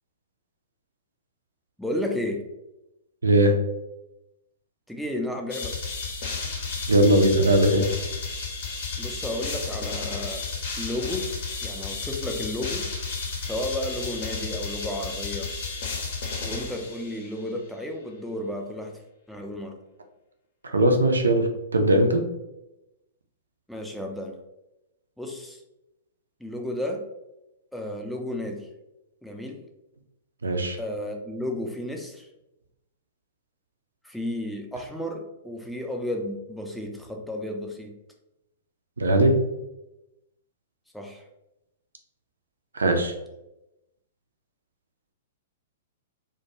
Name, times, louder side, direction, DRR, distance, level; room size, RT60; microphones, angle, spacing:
voice 1, 1.8-2.5 4.9-5.8 9.0-10.5 10.8-11.3 11.6-12.9 13.4-15.5 16.4-19.0 19.3-19.8 23.7-24.4 25.2-25.6 26.4-27.1 27.7-28.7 29.2-29.6 30.8-32.3 34.0-37.9 40.9-41.2, left 1 dB, ahead, 1 dB, 0.4 m, -32 dB
voice 2, 3.2-3.5 6.9-7.8 20.7-22.2 30.4-30.8 39.0-39.3 42.7-43.1, right 1 dB, 75° right, 4 dB, 0.4 m, -19 dB
sound 1, 5.5-17.4, left 4 dB, 50° left, 0.6 m, -32 dB
2.2 x 2.1 x 2.9 m, 0.92 s
figure-of-eight pair, 110°, 0 cm